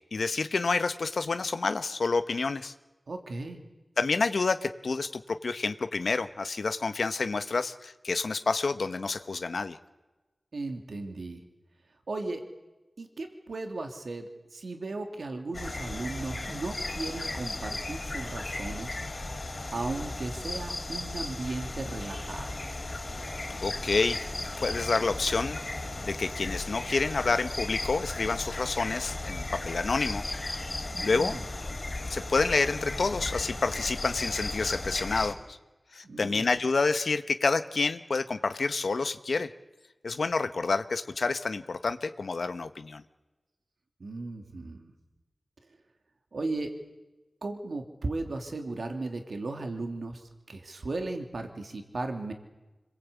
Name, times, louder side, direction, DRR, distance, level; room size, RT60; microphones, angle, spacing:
voice 1, 0.1-2.7 4.0-9.8 23.6-24.2 24.6-25.6 26.0-30.2 31.0-31.3 32.1-35.6 35.9-39.5 40.0-43.0, left 4 dB, 80° left, 9 dB, 1.1 m, -28 dB
voice 2, 3.1-3.6 10.5-11.4 12.1-12.4 13.0-19.0 19.7-22.7 30.9-31.4 36.0-36.5 44.0-44.9 46.3-46.8 47.4-52.3, right 2 dB, 80° right, 4 dB, 2.7 m, -36 dB
sound 1, 15.5-35.3, left 2 dB, 45° left, 4.6 m, -36 dB
26.5 x 21.5 x 8.4 m, 1.1 s
wide cardioid pair, 60°, 0 cm